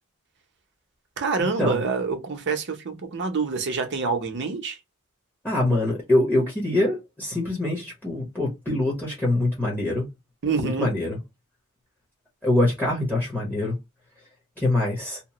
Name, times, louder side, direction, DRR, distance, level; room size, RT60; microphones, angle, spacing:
voice 1, 1.2-4.8 10.4-10.9, right 4 dB, 55° right, 0.7 m, -26 dB
voice 2, 5.4-10.0 10.6-11.2 12.4-13.7 14.6-15.2, left 2 dB, 10° left, 0.9 m, -24 dB
2.9 x 2.0 x 2.9 m
head